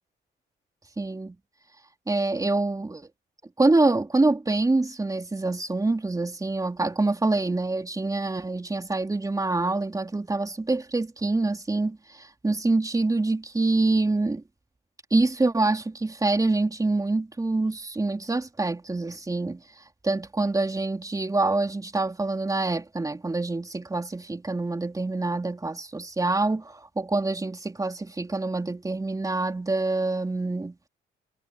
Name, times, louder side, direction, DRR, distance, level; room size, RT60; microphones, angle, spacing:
voice 1, 1.0-1.3 2.1-3.1 3.6-14.4 15.1-19.6 20.0-30.9, right 2 dB, 15° right, 3.4 m, -26 dB
cardioid pair, 90°, 20 cm